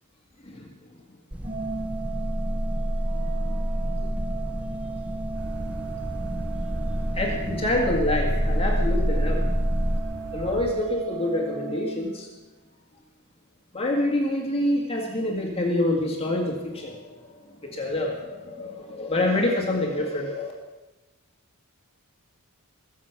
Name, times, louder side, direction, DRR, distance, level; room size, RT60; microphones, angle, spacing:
sound 1, 1.3-10.0, equal, 5° right, 0.5 m, -28 dB
Organ, 1.4-12.5, right 5 dB, 30° right, 1.5 m, -36 dB
voice 1, 3.4-4.0 7.1-9.5 10.3-12.3 13.7-20.5, left 1 dB, 25° left, 0 dB, 1.9 m, -27 dB
sound 2, 5.3-10.7, equal, 90° right, 2.0 m, -38 dB
22.5 x 7.5 x 5.9 m, 1.1 s
head